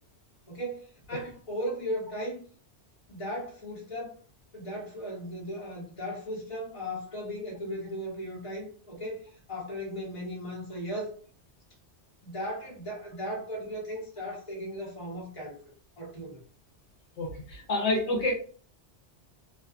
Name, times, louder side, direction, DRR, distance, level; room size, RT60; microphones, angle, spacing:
voice 1, 0.5-2.4 3.1-4.2 4.5-11.2 12.2-15.6 16.0-16.4, equal, 30° left, -4 dB, 1.1 m, -37 dB
voice 2, 17.2-18.3, left 2 dB, 70° left, -1 dB, 1.0 m, -28 dB
2.6 x 2.3 x 2.4 m, 0.41 s
omnidirectional pair, 1.2 m